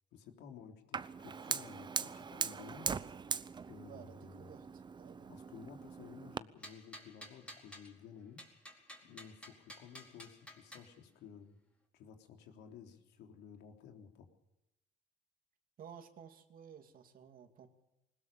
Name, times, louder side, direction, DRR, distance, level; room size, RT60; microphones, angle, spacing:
voice 1, 0.1-2.9 3.7-4.4 5.3-8.4 9.0-11.6 11.9-14.3, left 7 dB, 80° left, 3 dB, 3.6 m, -54 dB
Fire, 0.9-6.4, right 5 dB, 25° right, 0.8 m, -41 dB
voice 2, 3.8-5.3 15.8-17.7, right 8 dB, 55° right, 7 dB, 2.6 m, -54 dB
sound 1, 6.6-7.9 8.4-10.9, equal, 5° left, 4.4 m, -52 dB
21.0 x 20.0 x 7.0 m, 0.91 s
cardioid pair, 110°, 17 cm